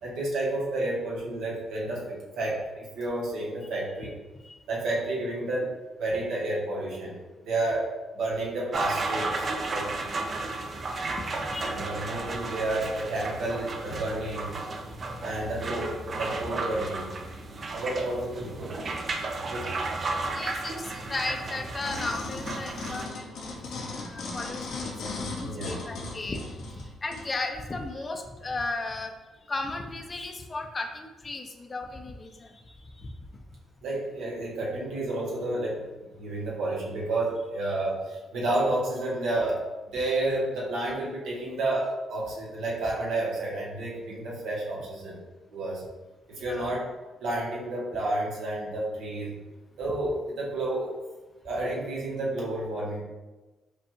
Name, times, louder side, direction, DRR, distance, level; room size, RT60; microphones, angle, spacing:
voice 1, 0.0-4.1 4.7-5.7 6.0-7.9 8.1-9.9 11.6-14.5 15.2-17.1 17.7-18.8 19.5-19.7 25.4-25.8 33.8-35.8 36.2-39.6 39.9-45.2 45.5-45.8 46.4-46.9 47.2-49.3 49.8-50.9 51.4-53.0, right 2 dB, 80° right, -5 dB, 1.1 m, -30 dB
sound 1, 8.7-23.1, right 3 dB, 40° right, 0.5 m, -33 dB
voice 2, 11.1-11.9 14.9-15.2 20.2-23.4 23.6-26.4 26.7-29.1 29.4-33.1 46.4-46.7, left 3 dB, 30° left, 5 dB, 0.5 m, -36 dB
sound 2, 21.8-27.3 27.9-28.0, left 3 dB, 75° left, 0.7 m, -37 dB
5.0 x 2.3 x 2.9 m, 1.1 s
cardioid pair, 90°, 0 cm